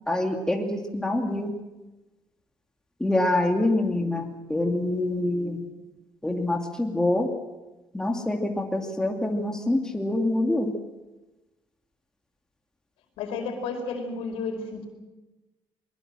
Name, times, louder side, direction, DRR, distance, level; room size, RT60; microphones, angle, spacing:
voice 1, 0.1-1.6 3.0-5.6 6.2-7.3 7.9-10.7, left 1 dB, 5° left, 2 dB, 2.5 m, -25 dB
voice 2, 13.2-14.9, left 4 dB, 85° left, 4 dB, 5.0 m, -32 dB
22.0 x 21.5 x 7.6 m, 1.1 s
cardioid pair, 115°, 9 cm